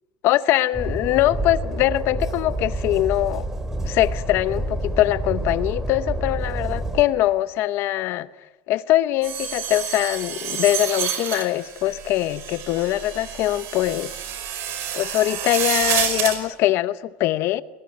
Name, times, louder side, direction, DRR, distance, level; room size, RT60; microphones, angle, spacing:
voice 1, 0.2-3.5 3.8-8.3 8.7-14.1 14.9-17.6, left 15 dB, 50° left, 0.8 m, -22 dB
Train, 0.7-7.0, right 1 dB, 10° right, 2.7 m, -28 dB
sound 1, 9.2-16.4, right 9 dB, 50° right, 5.2 m, -29 dB
28.0 x 20.0 x 9.7 m
supercardioid pair, 145°, 5 cm